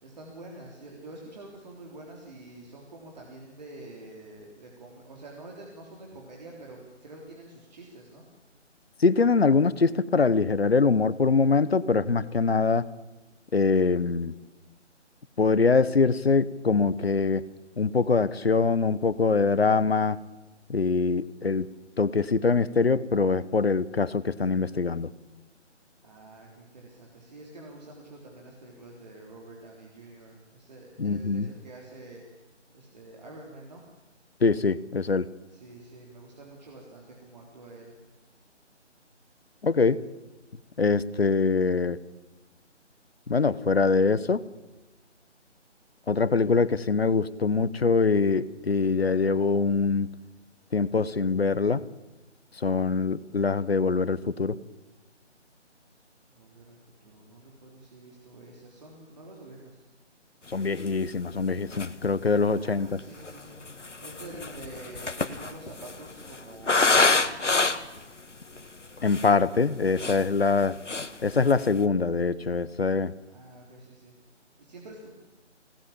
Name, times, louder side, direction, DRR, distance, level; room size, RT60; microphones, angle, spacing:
voice 1, 0.0-8.5 26.0-33.8 35.5-37.9 55.9-56.0 56.3-59.8 62.5-67.7 73.3-75.1, right 2 dB, 35° right, -1 dB, 3.6 m, -47 dB
voice 2, 9.0-12.9 13.5-14.4 15.4-17.4 17.8-20.2 20.7-21.7 22.0-25.1 31.0-31.5 34.4-35.3 39.6-40.0 40.8-42.0 43.3-44.4 46.1-50.1 50.7-51.9 52.6-54.6 60.5-63.0 69.0-70.8 71.2-73.1, left 4 dB, 55° left, 17 dB, 1.1 m, -23 dB
sound 1, 60.9-61.0 61.4-61.5 61.7-62.2 63.0-68.0 68.6-68.7 69.0-69.3 69.8-70.6 70.9-71.2 71.5-71.8, left 3 dB, 75° left, 1.6 m, -26 dB
24.5 x 18.5 x 8.8 m, 1.1 s
figure-of-eight pair, 155°, 36 cm